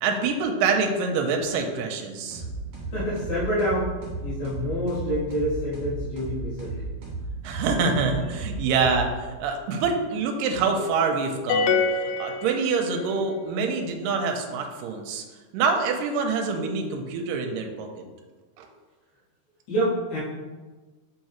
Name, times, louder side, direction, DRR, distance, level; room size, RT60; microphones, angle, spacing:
voice 1, 0.0-2.4 7.4-11.8 12.2-15.2 15.5-17.9 18.6-18.7, right 4 dB, 85° right, 4 dB, 2.3 m, -25 dB
sound 1, 2.3-9.5, right 3 dB, 50° right, 2.2 m, -35 dB
voice 2, 2.9-4.0 4.2-6.9 19.7-20.2, equal, 65° left, -8 dB, 2.9 m, -27 dB
sound 2, 11.5-13.2, left 4 dB, 85° left, 1.8 m, -25 dB
6.4 x 5.1 x 3.0 m, 1.3 s
omnidirectional pair, 3.9 m